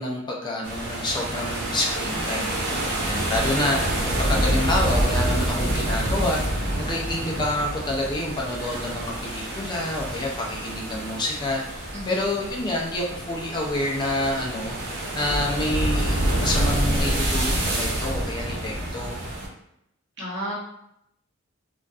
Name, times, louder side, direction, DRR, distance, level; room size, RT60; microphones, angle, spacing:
voice 1, 0.0-19.2, left 1 dB, 20° left, -2 dB, 0.4 m, -28 dB
sound 1, 0.6-19.5, right 1 dB, 85° right, 0.9 m, -27 dB
voice 2, 11.9-12.2 20.2-20.5, equal, 60° right, -5 dB, 0.9 m, -32 dB
2.5 x 2.2 x 2.3 m, 0.77 s
head